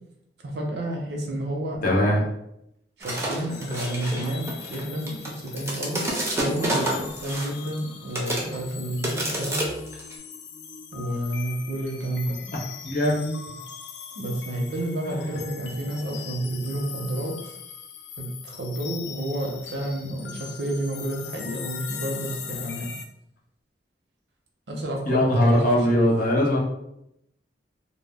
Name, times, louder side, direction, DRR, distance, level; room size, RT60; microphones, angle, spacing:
voice 1, 0.4-2.2 3.0-9.6 10.9-12.4 14.2-17.5 18.2-22.9 24.7-25.6 25.9-26.1, right 1 dB, 70° right, 0 dB, 0.6 m, -30 dB
voice 2, 1.8-2.2 12.5-12.6 12.8-13.4 15.0-15.4 16.0-16.1 25.0-26.6, left 1 dB, 50° left, -3 dB, 0.7 m, -21 dB
sound 1, 3.0-7.8 8.1-8.6 9.0-10.1, right 1 dB, 15° right, 0.5 m, -29 dB
sound 2, 3.5-23.1, left 7 dB, 70° left, 0.3 m, -40 dB
2.1 x 2.0 x 3.4 m, 0.78 s
head